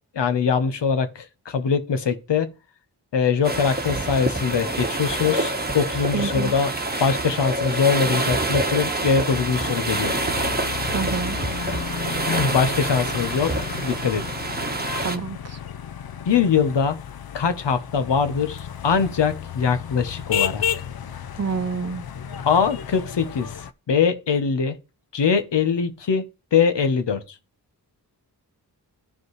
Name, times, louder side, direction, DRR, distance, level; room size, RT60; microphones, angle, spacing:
voice 1, 0.1-2.5 3.1-6.7 7.0-10.1 12.3-14.2 16.3-17.0 17.3-20.6 22.5-23.5 23.9-24.8 25.1-26.3 26.5-27.2, left 6 dB, 85° left, 0.9 m, -22 dB
sound 1, 3.4-15.2, right 2 dB, 25° right, 1.1 m, -27 dB
voice 2, 6.1-6.5 10.9-11.4 15.0-15.6 21.4-22.0, right 5 dB, 40° right, 0.8 m, -28 dB
sound 2, 9.3-23.7, left 8 dB, 60° left, 0.6 m, -33 dB
13.5 x 5.2 x 3.2 m
cardioid pair, 40°, 41 cm